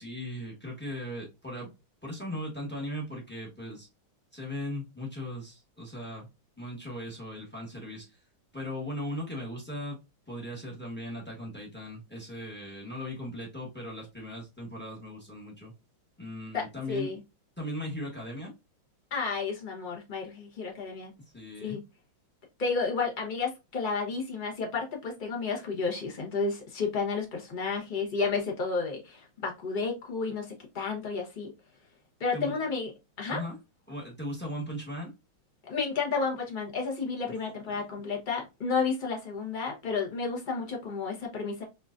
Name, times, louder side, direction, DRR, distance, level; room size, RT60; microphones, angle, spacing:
voice 1, 0.0-1.7 2.0-3.9 4.3-6.3 6.6-8.2 8.5-10.0 10.3-15.7 16.2-17.2 17.6-18.5 21.3-21.8 32.3-32.6 33.3-33.6 33.9-35.1 37.2-37.3 37.7-37.8, left 1 dB, 10° left, 0.7 m, -38 dB
voice 2, 16.5-17.2 19.1-21.1 21.6-21.8 22.6-31.5 32.2-32.9 33.2-33.4 35.6-41.6, left 4 dB, 45° left, 0.6 m, -31 dB
4.4 x 2.5 x 2.4 m
omnidirectional pair, 2.2 m